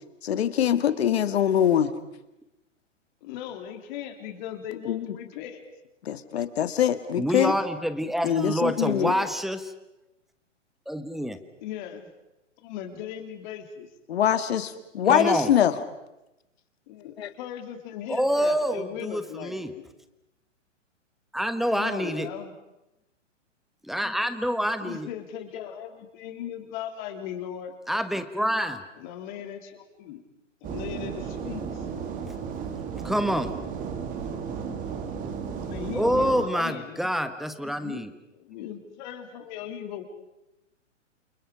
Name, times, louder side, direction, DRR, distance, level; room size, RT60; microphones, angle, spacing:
voice 1, 0.2-1.9 4.9-5.1 6.0-7.5 8.2-9.1 14.1-15.7 17.2-17.3, left 10 dB, 55° left, 10 dB, 2.3 m, -23 dB
voice 2, 3.2-5.6 8.8-9.3 11.6-12.0 12.6-13.9 16.9-19.9 21.7-22.5 24.8-27.7 29.0-30.2 30.6-31.9 35.7-37.0 37.6-38.0 38.3-40.0, left 10 dB, 40° left, 5 dB, 3.8 m, -38 dB
voice 3, 7.2-9.6 10.9-11.4 15.1-15.5 18.1-19.7 21.3-22.3 23.8-25.1 27.9-28.8 33.0-33.5 35.9-38.1, equal, ahead, 10 dB, 1.2 m, -27 dB
sound 1, 30.6-36.4, right 6 dB, 20° right, 2.7 m, -34 dB
29.0 x 28.0 x 5.2 m, 0.93 s
figure-of-eight pair, 125°, 37 cm